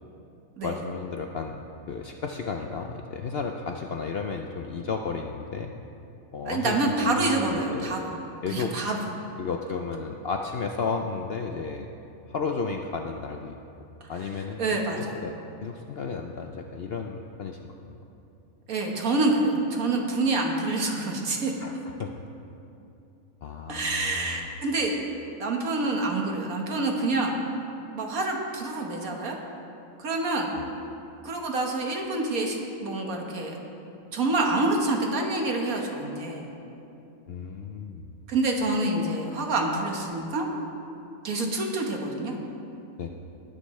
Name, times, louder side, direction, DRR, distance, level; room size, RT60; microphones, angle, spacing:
voice 1, 0.6-1.6 1.9-5.7 6.3-8.0 8.4-8.7 9.4-11.9 12.3-13.6 14.1-14.6 15.0-15.3 15.6-17.6 17.8-18.0 21.6-22.2 23.4-24.5 30.6-30.7 37.3-38.1 43.0-43.1, left 5 dB, 60° left, 3 dB, 0.6 m, -33 dB
voice 2, 6.5-8.1 8.5-9.0 14.6-15.1 18.7-21.5 23.7-24.9 25.4-27.4 27.9-29.4 30.0-30.5 31.2-33.5 34.1-36.5 38.3-40.5 41.2-42.3, right 2 dB, 70° right, 1 dB, 1.8 m, -27 dB
19.0 x 9.8 x 3.2 m, 2.7 s
omnidirectional pair, 1.5 m